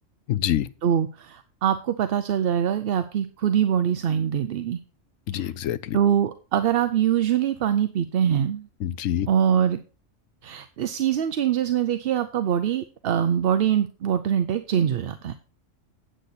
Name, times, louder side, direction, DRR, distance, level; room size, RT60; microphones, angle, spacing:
voice 1, 0.3-0.7 5.3-6.0 8.8-9.3, left 11 dB, 85° left, 1.0 m, -26 dB
voice 2, 0.8-4.8 5.3-5.4 5.9-8.6 9.3-9.8 10.4-15.3, right 9 dB, 55° right, 0.7 m, -23 dB
9.2 x 8.1 x 4.1 m
omnidirectional pair, 1.3 m